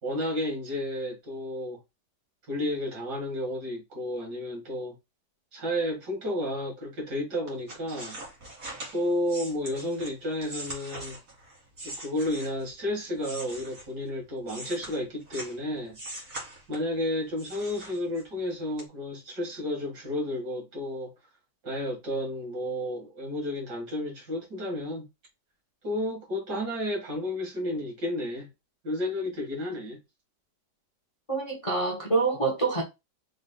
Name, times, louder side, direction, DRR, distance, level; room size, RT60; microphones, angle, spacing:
voice 1, 0.0-1.8 2.5-5.0 5.5-8.2 8.9-11.2 11.8-16.4 16.7-21.1 21.6-25.1 25.8-28.5 28.8-30.0, left 1 dB, 70° right, 2.7 m, -32 dB
sound 1, 7.5-12.7 13.2-15.6 15.9-17.0 17.4-18.4 18.8-18.9, right 1 dB, 50° right, 2.7 m, -42 dB
voice 2, 31.3-32.8, right 3 dB, 25° left, 0.8 m, -26 dB
5.2 x 4.0 x 2.4 m
omnidirectional pair, 1.8 m